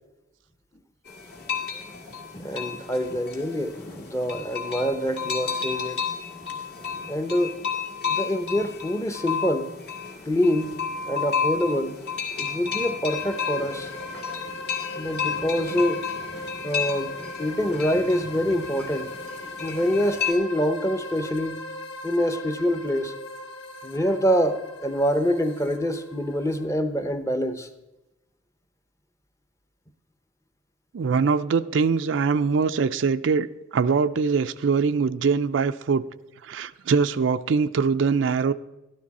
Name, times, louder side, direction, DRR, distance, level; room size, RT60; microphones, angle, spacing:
sound 1, 1.1-20.3, left 6 dB, 55° left, 2.0 m, -32 dB
voice 1, 2.3-6.0 7.1-7.5 8.0-9.7 10.3-10.8 11.1-12.0 12.4-13.9 15.0-16.1 16.6-17.1 17.4-19.1 19.6-21.6 22.0-23.1 23.8-27.7, equal, 15° left, 0.7 m, -25 dB
sound 2, 13.1-26.7, left 1 dB, 75° left, 1.4 m, -39 dB
voice 2, 30.9-33.5 33.7-36.0 36.4-38.5, right 5 dB, 70° right, 0.4 m, -22 dB
13.0 x 12.0 x 4.2 m
head